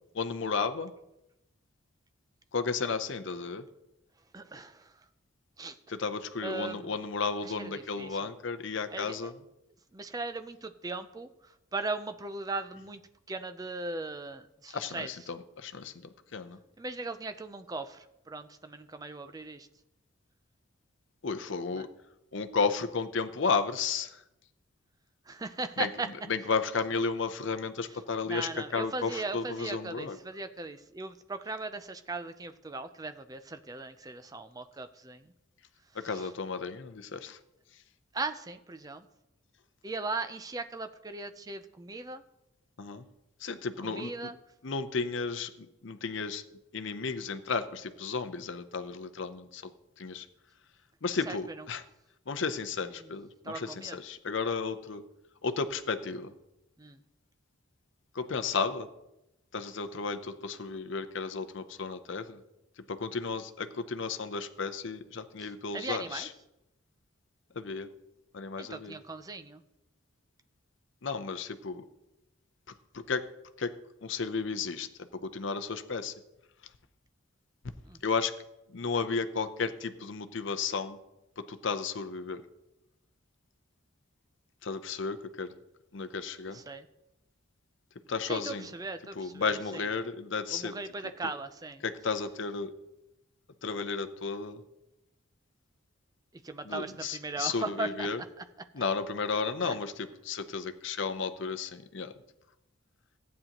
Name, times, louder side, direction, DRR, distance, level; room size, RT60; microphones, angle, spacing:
voice 1, 0.1-0.9 2.5-3.7 5.9-9.3 14.7-16.6 21.2-21.9 22.3-24.2 25.8-25.9 26.3-30.2 35.9-37.4 42.8-43.0 43.4-44.3 44.6-46.4 46.7-49.7 50.0-50.3 51.0-51.8 52.3-55.0 55.4-56.3 58.1-58.9 59.5-62.4 62.8-66.3 67.5-67.9 68.3-69.0 71.0-71.8 72.9-73.2 73.6-73.7 74.0-76.1 78.0-78.3 78.7-81.0 81.4-82.4 84.6-85.5 85.9-86.6 88.1-88.7 89.2-90.8 91.8-92.7 93.6-94.6 96.6-98.2 98.7-102.1, left 4 dB, 60° left, 10 dB, 0.6 m, -33 dB
voice 2, 4.3-4.9 5.6-5.8 6.4-7.0 7.4-8.3 8.9-9.3 9.9-13.0 13.3-15.1 16.8-19.7 21.8-21.9 25.3-26.1 28.3-35.3 36.0-36.3 38.1-39.1 39.8-42.2 43.8-44.4 51.3-51.6 53.0-53.1 53.4-54.0 56.8-57.0 65.4-66.3 68.6-69.6 77.9-78.0 86.5-86.9 88.3-89.8 90.5-91.8 96.4-98.1 98.4-98.5 99.6-99.8, right 3 dB, 15° right, 10 dB, 0.4 m, -38 dB
15.0 x 9.2 x 2.9 m, 0.91 s
head